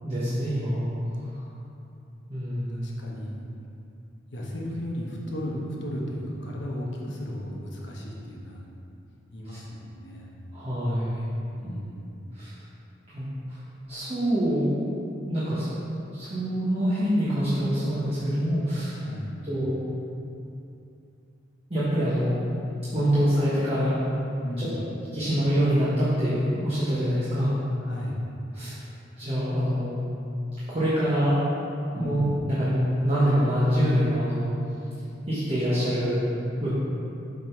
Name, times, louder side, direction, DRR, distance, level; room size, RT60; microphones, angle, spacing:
voice 1, 0.0-0.9 1.3-1.4 2.3-2.8 10.5-11.2 11.6-11.7 12.3-12.5 13.1-13.6 13.9-14.8 15.3-15.7 16.1-19.0 19.4-19.8 21.7-22.3 22.9-24.0 24.6-24.7 25.1-27.5 28.5-28.7 29.2-30.0 30.7-31.4 31.9-34.5 35.3-36.3 36.6-36.7, equal, 30° right, -11 dB, 1.2 m, -25 dB
voice 2, 2.7-3.4 4.3-8.7 9.3-10.4 11.6-12.1 19.0-19.4 24.4-24.8 27.8-28.2 31.9-32.4, equal, 65° left, -3 dB, 1.1 m, -35 dB
7.2 x 3.9 x 4.6 m, 2.7 s
head